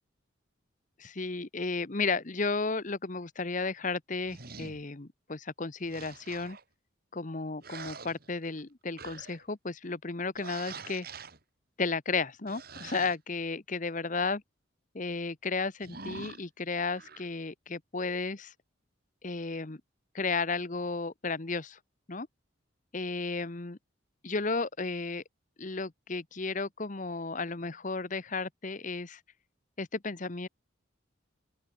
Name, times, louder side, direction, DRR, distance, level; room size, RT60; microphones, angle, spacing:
voice 1, 1.0-6.6 7.1-11.1 11.8-14.4 14.9-18.5 19.2-19.8 20.1-21.8 22.1-22.3 22.9-23.8 24.2-25.2 25.6-29.2 29.8-30.5, left 4 dB, 40° left, 1.1 m, -33 dB
sound 1, 4.3-4.8 5.8-6.6 7.6-8.6 9.0-9.4 10.4-11.4 12.5-13.2 15.8-16.4 16.9-17.3, right 4 dB, 50° right, 3.7 m, -45 dB
open air
head